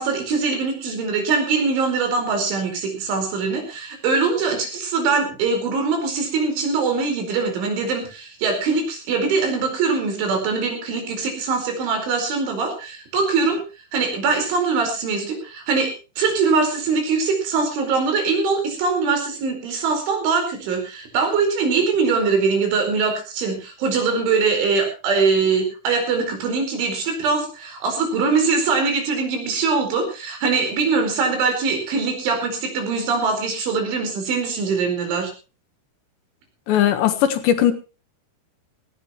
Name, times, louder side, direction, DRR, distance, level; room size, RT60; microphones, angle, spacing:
voice 1, 0.0-13.6 13.9-35.3, right 4 dB, 80° right, 4 dB, 7.1 m, -22 dB
voice 2, 36.7-37.7, left 10 dB, 75° left, 9 dB, 3.5 m, -18 dB
18.0 x 16.5 x 3.1 m, 0.32 s
omnidirectional pair, 5.3 m